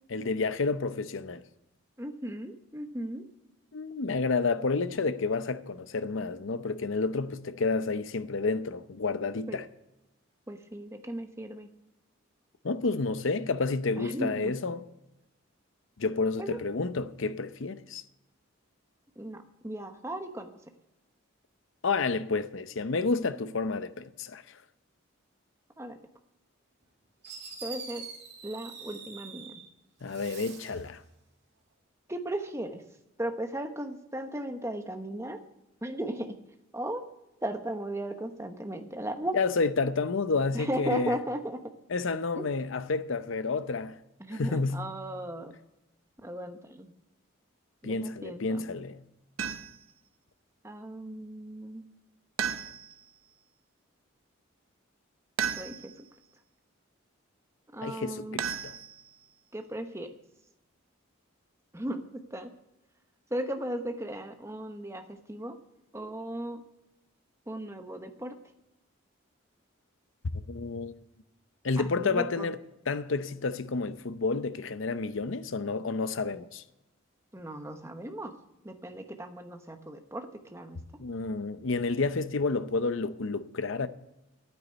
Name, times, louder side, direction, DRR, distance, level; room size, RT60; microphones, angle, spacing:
voice 1, 0.1-1.4 3.7-9.7 12.6-14.9 16.0-18.0 21.8-24.4 30.0-31.0 39.3-41.2 41.9-44.0 44.3-44.9 47.8-49.0 57.8-58.7 70.5-70.9 71.6-72.6 72.9-76.6 81.0-83.9, left 4 dB, 70° left, 0.7 m, -30 dB
voice 2, 2.0-3.2 9.5-9.6 10.5-11.7 14.0-14.5 16.4-16.6 19.2-20.5 25.8-25.9 27.6-28.0 28.4-29.6 32.1-32.8 33.2-35.4 35.8-36.3 36.7-37.0 37.4-39.4 40.5-41.6 42.4-42.5 44.2-45.6 46.2-46.9 47.8-48.6 50.6-51.8 55.6-55.9 57.7-58.4 59.5-60.1 61.7-62.5 63.3-65.0 65.3-65.5 65.9-66.6 67.5-68.3 71.8-72.5 77.3-78.3 78.6-80.8, right 1 dB, 15° right, 1.0 m, -36 dB
Fireworks, 26.8-26.9 27.2-29.7 30.0-30.9, right 5 dB, 55° right, 2.4 m, -44 dB
sound 1, 49.4-49.9 52.4-53.1 55.4-56.1 58.4-59.3, right 8 dB, 90° right, 0.8 m, -34 dB
9.8 x 9.2 x 9.1 m
head